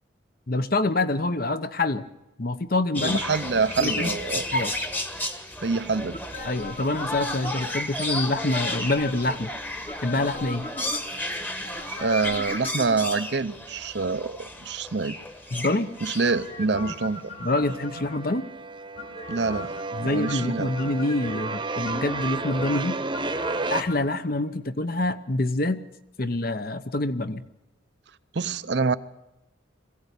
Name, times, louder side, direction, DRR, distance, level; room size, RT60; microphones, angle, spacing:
voice 1, 0.5-2.0 2.4-3.2 3.8-4.1 4.5-4.7 6.4-9.5 10.0-10.7 15.5-15.9 17.4-18.5 19.9-23.0 23.7-25.8 26.2-27.4, left 2 dB, 50° left, 11 dB, 0.9 m, -26 dB
sound 1, 2.9-17.1 17.7-17.8, left 1 dB, 10° left, 1.2 m, -33 dB
voice 2, 3.0-4.5 5.6-6.2 12.0-15.2 16.0-17.2 19.3-19.7 20.0-20.7 28.3-29.0, right 4 dB, 60° right, 13 dB, 0.7 m, -26 dB
sound 2, 6.1-7.9 8.7-9.4 9.8-11.3 11.7-13.4 16.2-18.4 19.0-19.9 20.3-21.4 21.8-24.2 24.5-24.6, left 2 dB, 30° left, 1.4 m, -39 dB
sound 3, 15.6-16.4 16.7-23.8, right 3 dB, 25° right, 1.0 m, -33 dB
21.5 x 16.0 x 8.3 m, 0.94 s
head